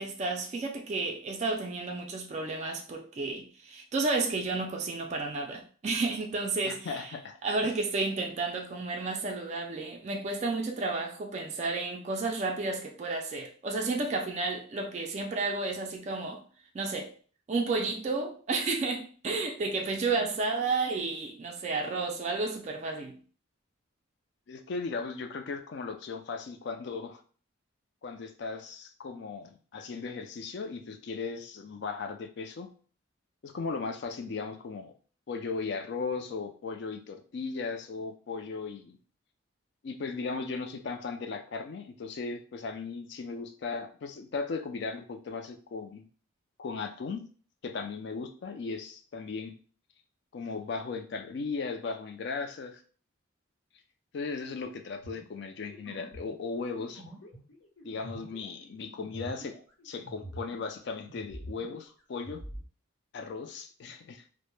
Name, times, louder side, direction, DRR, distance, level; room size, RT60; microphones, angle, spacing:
voice 1, 0.0-7.1 7.4-16.4 16.7-17.1 17.5-23.2, right 3 dB, 35° right, 0.3 m, -32 dB
voice 2, 6.6-7.4 24.5-27.2 28.0-32.7 33.4-34.9 35.3-39.0 39.8-46.0 46.6-47.2 47.6-49.5 50.3-52.8 54.1-57.0 57.8-59.5 59.8-62.4 63.1-64.2, left 4 dB, 55° left, 0.3 m, -37 dB
sound 1, 55.0-60.8 61.0-62.6, right 1 dB, 80° left, 0.9 m, -45 dB
2.1 x 2.0 x 3.0 m
head